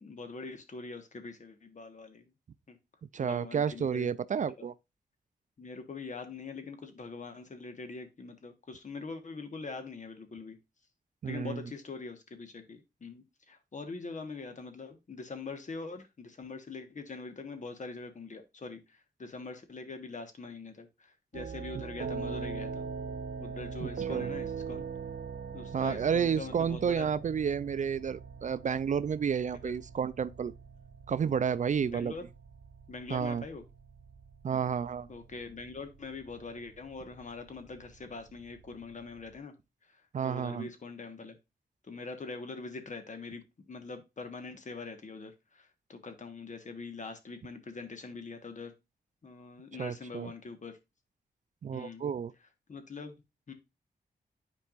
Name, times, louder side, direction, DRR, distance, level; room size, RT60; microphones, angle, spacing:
voice 1, 0.0-2.3 2.7-2.8 3.2-4.1 4.6-4.7 5.6-10.6 11.3-22.9 23.4-24.9 25.5-27.1 29.6-29.7 31.8-32.2 32.9-33.6 35.1-39.5 39.8-41.4 41.8-48.7 49.2-50.8 51.7-52.0 52.7-53.1 53.5-53.6, left 4 dB, 50° left, 1.3 m, -43 dB
voice 2, 3.1-4.7 11.2-11.6 23.8-24.3 25.7-30.5 31.1-32.1 33.1-33.4 34.4-35.1 40.1-40.7 49.8-50.3 51.6-52.3, right 7 dB, 50° right, 0.4 m, -31 dB
sound 1, 21.3-39.3, right 5 dB, 75° right, 0.9 m, -42 dB
10.0 x 4.5 x 2.4 m
wide cardioid pair, 85°, 16 cm